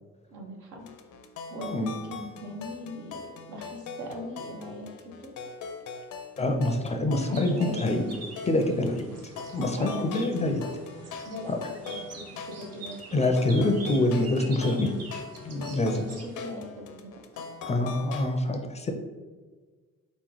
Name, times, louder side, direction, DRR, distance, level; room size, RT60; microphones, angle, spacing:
voice 1, 0.3-0.8 1.5-3.2 3.5-5.3 7.0-8.2 9.8-10.1 11.2-13.3 16.0-17.5, left 1 dB, 80° right, 1 dB, 1.0 m, -40 dB
sound 1, 0.8-18.4, left 5 dB, 75° left, 0.6 m, -42 dB
voice 2, 6.4-8.1 8.5-9.1 9.5-10.6 11.5-11.6 13.1-15.0 15.4-16.0 17.7-18.9, left 1 dB, 20° left, 4 dB, 0.5 m, -25 dB
sound 2, 7.3-16.4, right 3 dB, 55° right, 1.0 m, -46 dB
4.1 x 3.0 x 3.8 m, 1.4 s
cardioid pair, 90°, 30 cm